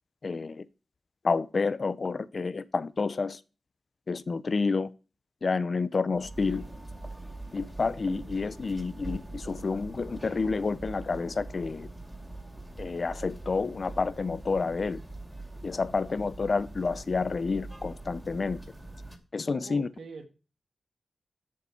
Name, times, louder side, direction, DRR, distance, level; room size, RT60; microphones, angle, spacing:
voice 1, 0.2-0.7 1.2-3.4 4.1-4.9 5.4-6.6 7.5-11.9 12.8-15.0 15.6-18.6 19.3-19.9, left 4 dB, 60° left, 0.6 m, -29 dB
sound 1, 6.1-19.2, right 2 dB, 10° right, 2.3 m, -43 dB
voice 2, 19.5-20.2, right 4 dB, 85° right, 1.7 m, -44 dB
7.2 x 7.0 x 4.2 m
cardioid pair, 50°, 0 cm